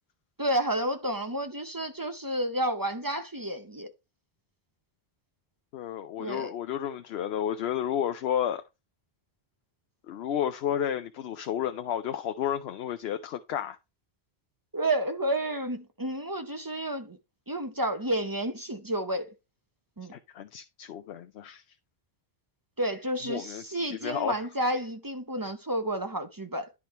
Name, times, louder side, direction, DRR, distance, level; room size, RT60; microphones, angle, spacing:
voice 1, 0.4-3.9 6.2-6.5 14.7-17.2 17.5-19.3 20.0-20.1 22.8-26.7, right 1 dB, 20° right, 0.7 m, -30 dB
voice 2, 5.7-8.6 10.1-13.8 20.1-21.6 23.3-24.3, left 9 dB, 80° left, 0.8 m, -32 dB
10.5 x 3.7 x 4.2 m
omnidirectional pair, 1.1 m